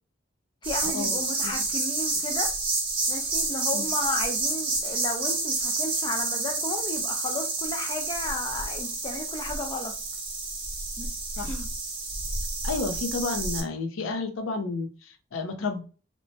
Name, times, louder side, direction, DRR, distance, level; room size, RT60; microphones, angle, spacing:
voice 1, 0.6-2.5 3.1-9.9 11.0-11.1 11.4-11.7, left 2 dB, 20° left, 0.4 m, -34 dB
sound 1, 0.6-13.6, right 3 dB, 25° right, 0.7 m, -29 dB
voice 2, 12.6-15.8, left 3 dB, 85° left, 0.6 m, -31 dB
2.9 x 2.1 x 2.7 m
head